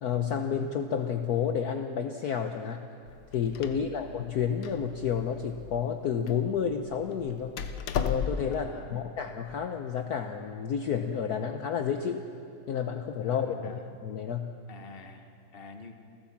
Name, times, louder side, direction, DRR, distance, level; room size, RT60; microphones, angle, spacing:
voice 1, 0.0-2.8 3.3-7.5 8.0-12.3 12.7-14.5, left 7 dB, 60° left, 5 dB, 1.2 m, -30 dB
Door, 3.1-8.7, left 7 dB, 85° left, 1.8 m, -36 dB
voice 2, 8.5-9.0 13.3-13.8 14.7-16.1, left 4 dB, 35° left, 5 dB, 1.4 m, -48 dB
29.0 x 14.0 x 7.3 m, 2.5 s
omnidirectional pair, 2.1 m